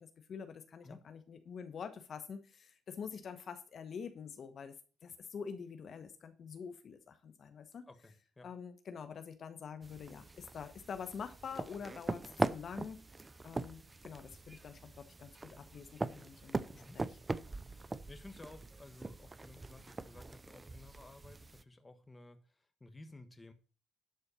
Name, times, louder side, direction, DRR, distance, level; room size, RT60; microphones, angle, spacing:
voice 1, 0.0-4.7 5.0-7.9 8.4-13.0 13.4-17.2, left 6 dB, 55° left, 9 dB, 1.2 m, -46 dB
voice 2, 7.9-8.5 16.8-17.0 17.7-23.5, left 2 dB, 20° left, 8 dB, 1.5 m, -55 dB
sound 1, 9.8-21.6, right 3 dB, 25° right, 0.6 m, -42 dB
11.5 x 4.4 x 7.0 m, 0.36 s
cardioid pair, 90°, 0 cm